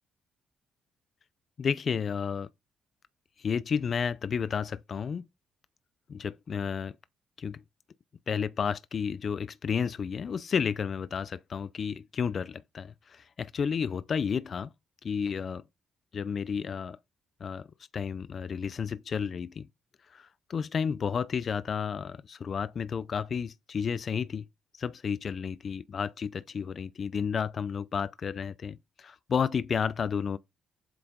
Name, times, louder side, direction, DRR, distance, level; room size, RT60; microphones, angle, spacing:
voice 1, 1.6-2.5 3.4-5.2 6.1-7.0 7.4-7.6 8.3-14.7 15.0-15.6 16.1-17.0 17.4-17.7 17.9-19.7 20.1-24.5 24.7-30.4, left 6 dB, 35° left, 0.4 m, -32 dB
7.9 x 5.8 x 5.2 m
cardioid pair, 165°, 0 cm